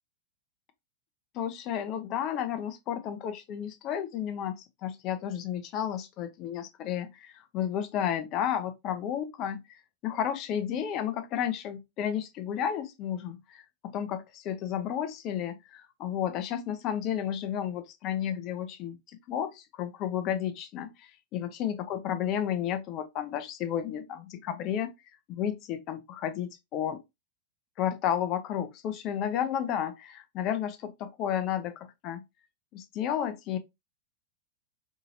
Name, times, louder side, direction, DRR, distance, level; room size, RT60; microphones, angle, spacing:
voice 1, 1.3-24.9 25.3-27.0 27.8-32.2 32.7-33.6, left 9 dB, 40° left, 0.5 m, -32 dB
2.8 x 2.7 x 2.6 m
figure-of-eight pair, 90°, 0 cm